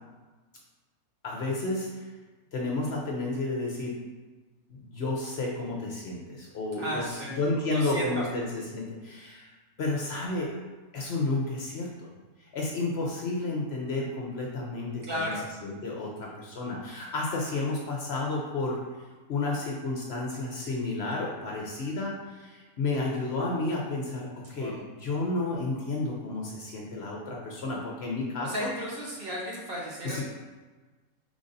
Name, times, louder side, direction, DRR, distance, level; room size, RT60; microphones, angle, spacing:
voice 1, 1.2-2.1 2.5-4.0 4.7-9.5 9.8-10.5 10.9-12.1 12.5-15.3 15.6-18.8 19.3-28.7 30.0-30.2, left 2 dB, 60° left, -2 dB, 0.8 m, -31 dB
voice 2, 6.8-7.3 7.7-8.2 15.0-15.4 24.6-24.7 28.4-30.2, equal, 50° right, -4 dB, 0.9 m, -34 dB
5.1 x 3.4 x 2.6 m, 1.3 s
omnidirectional pair, 1.4 m